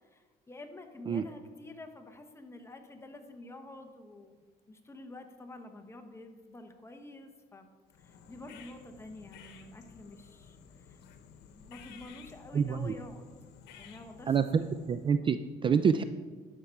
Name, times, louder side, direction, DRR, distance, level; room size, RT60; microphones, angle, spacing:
voice 1, 0.0-7.7 8.0-13.3 13.7-14.7, left 2 dB, 15° left, 5 dB, 1.1 m, -49 dB
sound 1, 7.9-15.2, left 7 dB, 90° left, 1.0 m, -54 dB
voice 2, 12.5-12.9 14.3-16.0, right 6 dB, 30° right, 11 dB, 0.3 m, -27 dB
11.0 x 6.7 x 4.6 m, 1.5 s
cardioid pair, 110°, 17 cm